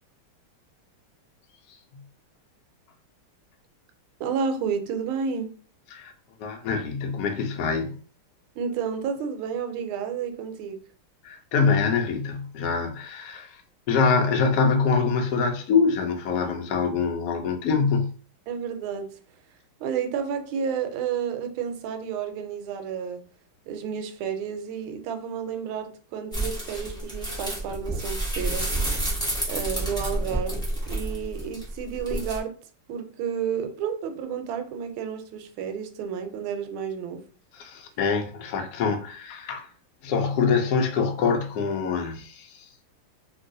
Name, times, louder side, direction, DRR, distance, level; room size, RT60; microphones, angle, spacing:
voice 1, 4.2-5.5 8.5-10.8 18.5-19.1 19.8-23.2 23.7-28.7 29.5-32.5 32.9-37.2, right 7 dB, 80° right, 1.4 m, -31 dB
voice 2, 6.4-7.9 11.2-13.6 13.9-18.1 37.6-39.7 40.0-42.6, left 5 dB, 70° left, 0.9 m, -24 dB
sound 1, 26.3-32.4, right 1 dB, 5° left, 0.3 m, -29 dB
3.0 x 2.8 x 2.6 m
omnidirectional pair, 2.3 m